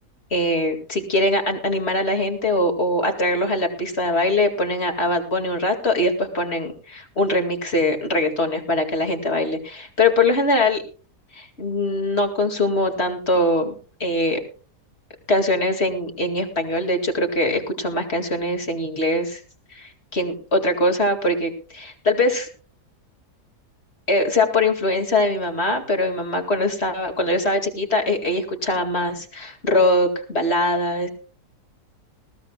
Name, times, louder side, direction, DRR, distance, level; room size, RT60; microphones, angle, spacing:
voice 1, 0.3-10.8 11.3-13.7 14.0-14.4 15.3-19.4 19.7-22.5 24.1-31.1, left 1 dB, 40° left, 4 dB, 2.4 m, -22 dB
20.5 x 15.0 x 2.3 m, 0.39 s
omnidirectional pair, 1.7 m